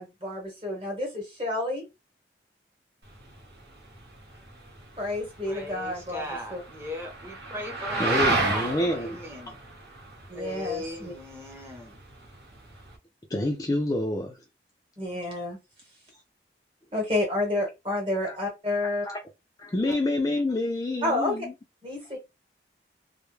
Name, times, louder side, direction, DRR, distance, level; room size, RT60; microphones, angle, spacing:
voice 1, 0.0-1.8 5.0-6.2 6.5-6.6 10.3-11.1 15.0-15.6 16.9-19.1 21.0-21.3 21.8-22.2, left 2 dB, 30° right, 1.0 m, -29 dB
sound 1, 3.0-13.0, right 3 dB, 65° right, 0.9 m, -33 dB
voice 2, 5.5-9.6 10.3-12.0, left 1 dB, 15° right, 0.6 m, -38 dB
voice 3, 8.0-9.2 13.3-14.4 18.2-18.4 19.0-19.2 19.6-21.5, left 1 dB, 20° left, 0.3 m, -27 dB
2.2 x 2.0 x 3.0 m
head